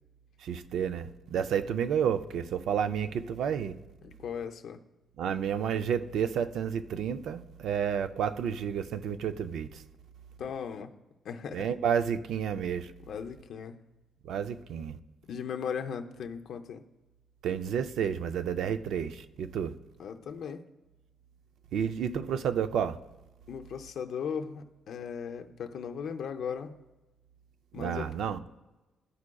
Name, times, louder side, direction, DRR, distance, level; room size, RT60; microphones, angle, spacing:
voice 1, 0.4-3.7 5.2-9.7 11.5-12.9 14.2-15.0 17.4-19.7 21.7-23.0 27.8-28.4, right 8 dB, 75° right, 0.4 m, -30 dB
voice 2, 4.0-4.8 10.4-10.9 11.2-11.7 13.1-13.8 15.2-16.8 20.0-20.6 23.5-26.8 27.7-28.1, left 7 dB, 65° left, 0.5 m, -37 dB
12.5 x 4.8 x 2.2 m
cardioid pair, 130°, 0 cm